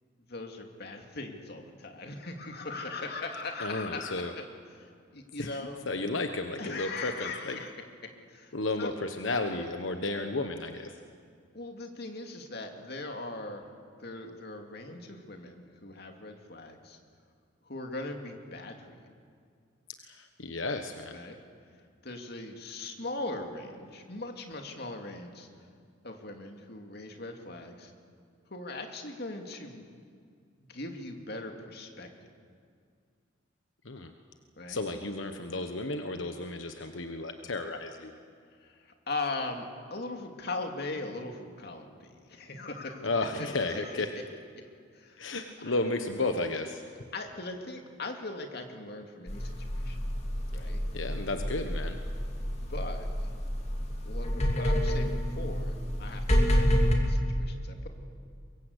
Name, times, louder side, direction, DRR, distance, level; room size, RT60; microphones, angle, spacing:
voice 1, 0.3-4.4 4.7-5.8 6.6-7.8 8.0-9.0 11.5-13.7 14.0-17.0 17.6-19.1 21.1-21.4 22.0-25.5 26.0-27.9 28.5-29.8 30.7-32.1 34.6-34.8 38.6-43.1 43.4-43.5 43.8-44.2 44.9-45.2 45.6-45.8 47.1-50.0 50.5-50.9 52.7-53.3 54.0-57.9, left 2 dB, 55° left, 4 dB, 2.6 m, -40 dB
voice 2, 3.6-4.3 5.4-5.5 5.9-7.6 8.5-11.0 20.0-21.2 33.8-34.1 34.7-38.2 43.0-44.1 45.2-46.8 50.5-52.0, left 2 dB, 85° left, 6 dB, 1.3 m, -33 dB
sound 1, 49.3-57.0, equal, 35° left, 3.1 m, -29 dB
24.0 x 22.5 x 8.2 m, 2.2 s
head